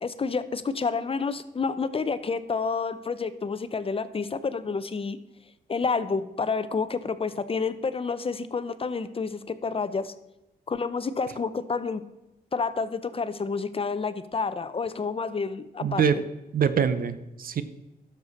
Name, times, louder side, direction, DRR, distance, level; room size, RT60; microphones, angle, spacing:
voice 1, 0.0-5.2 5.7-10.1 10.7-12.0 12.5-16.0, left 4 dB, 35° left, 13 dB, 0.6 m, -29 dB
voice 2, 15.8-16.2 16.5-17.6, right 7 dB, 60° right, 13 dB, 0.7 m, -24 dB
12.0 x 6.7 x 4.2 m, 0.95 s
cardioid pair, 85°, 16 cm